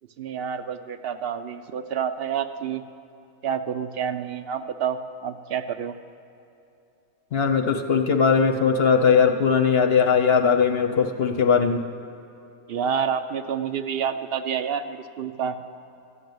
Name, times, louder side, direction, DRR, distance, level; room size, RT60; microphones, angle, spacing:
voice 1, 0.2-2.8 3.4-5.9 12.7-15.6, right 7 dB, 60° right, 10 dB, 0.6 m, -28 dB
voice 2, 7.3-11.9, left 6 dB, 55° left, 5 dB, 0.8 m, -19 dB
14.0 x 6.6 x 9.3 m, 2.8 s
omnidirectional pair, 1.5 m